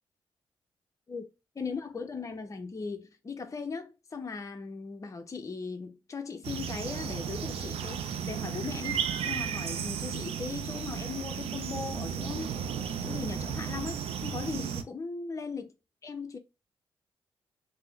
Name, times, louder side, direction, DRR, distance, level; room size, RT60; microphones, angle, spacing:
voice 1, 1.5-12.5 13.0-15.7 16.0-16.4, left 4 dB, 30° left, 0.6 m, -38 dB
sound 1, 6.4-14.8, right 7 dB, 75° right, 0.4 m, -34 dB
3.6 x 2.0 x 3.0 m
supercardioid pair, 55°, 10 cm